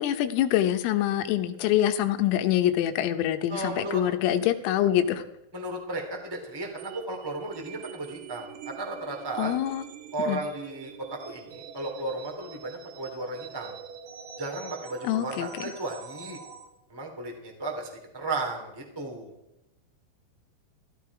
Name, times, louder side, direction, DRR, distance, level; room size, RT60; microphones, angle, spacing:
voice 1, 0.0-5.2 9.4-9.8 10.3-10.4 15.0-15.7, left 12 dB, 80° left, 8 dB, 3.6 m, -25 dB
voice 2, 3.5-4.0 5.5-9.5 10.1-13.7 14.4-16.4 16.9-19.3, right 2 dB, 20° right, 1 dB, 0.6 m, -34 dB
sound 1, 6.8-16.7, right 7 dB, 70° right, 2.9 m, -44 dB
16.0 x 13.0 x 4.8 m, 0.90 s
omnidirectional pair, 6.0 m